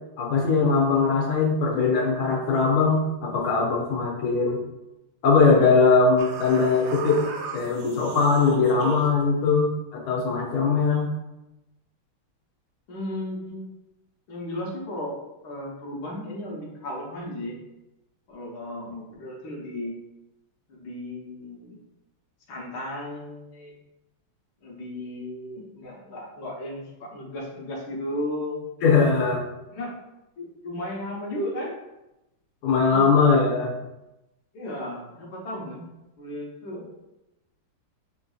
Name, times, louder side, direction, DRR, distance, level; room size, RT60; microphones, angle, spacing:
voice 1, 0.2-4.6 5.2-7.2 7.5-11.1 28.8-29.4 32.6-33.7, left 4 dB, 85° left, -2 dB, 1.6 m, -21 dB
sound 1, 6.2-9.2, right 3 dB, 80° right, 1.4 m, -36 dB
voice 2, 12.9-13.7 14.3-15.2 15.4-17.6 18.3-20.0 20.7-21.8 22.5-23.8 24.6-28.6 29.7-30.0 30.4-31.7 32.9-33.2 34.5-35.8 36.2-36.9, left 1 dB, 55° left, -4 dB, 1.4 m, -35 dB
6.2 x 2.6 x 2.3 m, 0.94 s
omnidirectional pair, 2.3 m